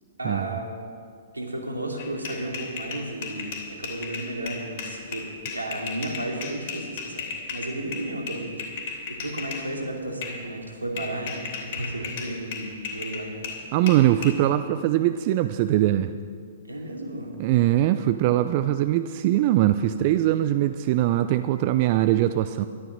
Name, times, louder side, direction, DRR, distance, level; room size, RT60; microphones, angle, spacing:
voice 1, 0.2-0.8 1.3-5.2 5.5-8.5 9.1-13.3 16.7-17.3, right 1 dB, 85° right, 0 dB, 2.6 m, -33 dB
sound 1, 2.0-9.7 10.2-10.4 11.0-14.3, left 5 dB, 50° left, 3.1 m, -35 dB
voice 2, 13.7-16.1 17.4-22.7, right 13 dB, 45° right, 11 dB, 0.4 m, -21 dB
13.0 x 12.0 x 6.5 m, 2.2 s
figure-of-eight pair, 115°, 0 cm